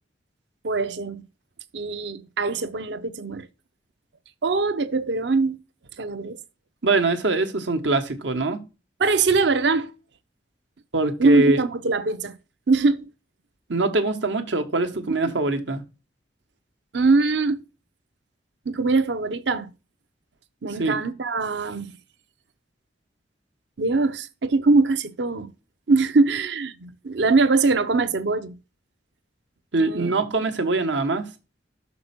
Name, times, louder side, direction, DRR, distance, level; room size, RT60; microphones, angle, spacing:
voice 1, 0.6-1.2 1.7-3.5 4.4-5.6 6.0-6.4 9.0-9.9 11.2-12.4 12.7-13.1 15.2-15.4 16.9-17.6 18.7-19.7 20.6-21.9 23.8-25.5 25.9-28.6 29.8-30.1, right 3 dB, 70° right, 0.7 m, -22 dB
voice 2, 6.8-8.6 10.9-11.6 13.7-15.8 20.8-21.0 29.7-31.3, right 2 dB, 85° right, 1.3 m, -23 dB
6.6 x 4.3 x 5.8 m
head